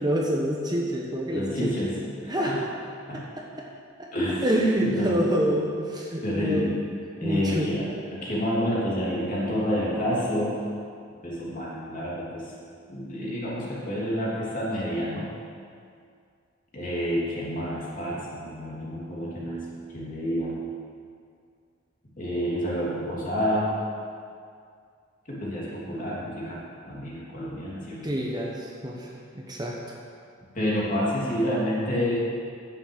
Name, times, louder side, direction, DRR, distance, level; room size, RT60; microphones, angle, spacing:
voice 1, 0.0-1.8 2.3-2.5 4.0-4.1 4.4-6.7 7.2-7.7 28.0-29.8, right 1 dB, 20° right, -2 dB, 1.0 m, -27 dB
voice 2, 1.3-2.0 2.2-2.6 3.1-3.2 4.1-4.5 4.8-5.2 6.2-6.8 7.2-10.6 11.2-12.5 12.9-15.3 16.7-20.6 22.2-23.8 25.3-26.6 26.8-28.1 30.5-32.1, equal, 40° left, -6 dB, 3.2 m, -29 dB
10.0 x 7.2 x 8.1 m, 2.3 s
head